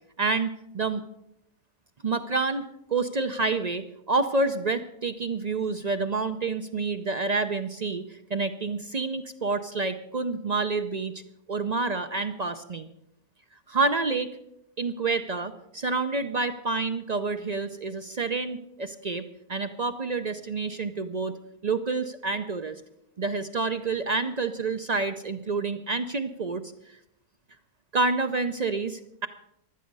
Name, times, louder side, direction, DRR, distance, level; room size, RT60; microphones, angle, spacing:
voice 1, 0.2-1.0 2.0-11.2 11.5-12.9 13.7-14.3 14.8-21.4 21.6-22.8 23.2-27.0 27.9-29.3, right 3 dB, 50° right, 9 dB, 0.5 m, -28 dB
16.0 x 11.5 x 5.4 m, 0.80 s
omnidirectional pair, 1.5 m